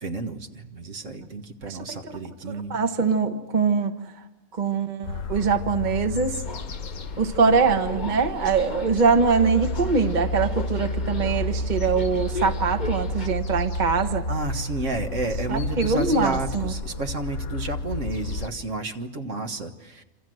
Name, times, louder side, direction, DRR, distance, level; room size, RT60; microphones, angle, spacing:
voice 1, 0.0-2.8 14.3-20.0, right 2 dB, 65° right, 5 dB, 1.9 m, -31 dB
voice 2, 2.4-3.9 4.5-6.4 7.2-14.3 15.5-16.7, right 5 dB, 35° right, 7 dB, 1.3 m, -23 dB
sound 1, 5.0-18.5, left 2 dB, 65° left, 1.5 m, -31 dB
Subway metro underground, 6.4-13.3, left 4 dB, 35° left, 1.2 m, -39 dB
27.5 x 27.0 x 7.8 m, 1.0 s
omnidirectional pair, 1.4 m